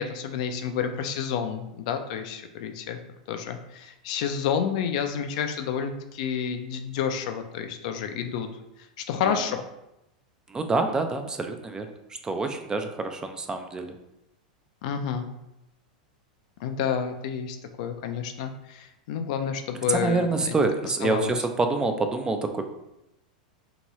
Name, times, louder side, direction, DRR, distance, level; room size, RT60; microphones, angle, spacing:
voice 1, 0.0-3.0 3.3-8.5 9.1-9.6 14.8-15.3 16.6-20.5 21.0-21.4, left 7 dB, 60° left, 6 dB, 0.3 m, -29 dB
voice 2, 10.5-11.9 12.2-13.9 19.9-22.7, right 3 dB, 15° right, 6 dB, 0.3 m, -26 dB
2.8 x 2.2 x 3.0 m, 0.89 s
hypercardioid pair, 100°, 4 cm